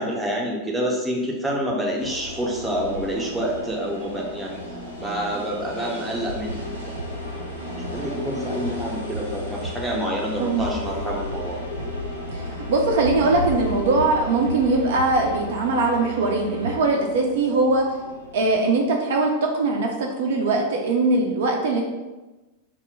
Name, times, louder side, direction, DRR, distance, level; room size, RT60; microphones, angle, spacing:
voice 1, 0.0-4.6 5.0-6.9 7.9-11.6, equal, 10° right, -2 dB, 0.5 m, -27 dB
sound 1, 2.0-18.6, left 2 dB, 90° left, 0.6 m, -35 dB
sound 2, 6.4-16.7, right 2 dB, 90° right, 0.7 m, -36 dB
voice 2, 10.4-10.7 12.3-17.8 18.3-21.8, right 3 dB, 60° right, 1 dB, 0.3 m, -21 dB
2.1 x 2.0 x 3.6 m, 1.1 s
figure-of-eight pair, 90°, 0 cm